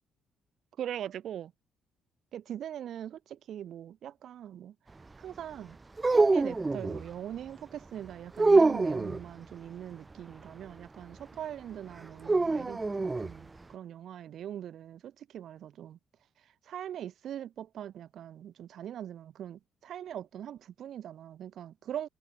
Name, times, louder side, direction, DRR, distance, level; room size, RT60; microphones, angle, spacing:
voice 1, 0.8-1.5 2.3-4.8 5.2-5.8 6.1-16.0 16.4-22.1, right 10 dB, 70° right, 3.5 m, -41 dB
sound 1, 6.0-7.0 8.4-9.2 12.3-13.3, right 3 dB, 25° right, 1.0 m, -25 dB
cardioid pair, 90°, 0 cm